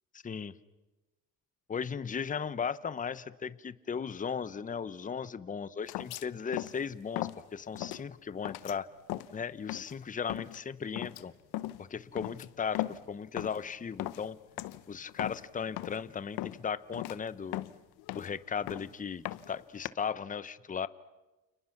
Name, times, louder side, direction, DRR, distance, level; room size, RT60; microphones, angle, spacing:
voice 1, 0.1-0.5 1.7-8.9 9.3-11.3 11.8-14.4 14.9-17.6 18.1-20.9, left 6 dB, 20° left, 15 dB, 0.8 m, -37 dB
sound 1, 5.9-6.3 6.5-6.8 7.1-7.4 7.7-8.0 8.4-8.8 9.1-9.4 9.7-10.0 10.3-10.6 11.0-11.2 11.5-11.8 12.2-13.1 13.4-13.7 14.0-14.3 14.6-14.8 15.1-15.5 15.8-16.0 16.4-16.6 16.9-17.2 17.5-18.4 18.7-18.9 19.2-19.9, left 16 dB, 80° left, 0.9 m, -37 dB
29.5 x 29.0 x 5.9 m, 1.1 s
cardioid pair, 110°, 37 cm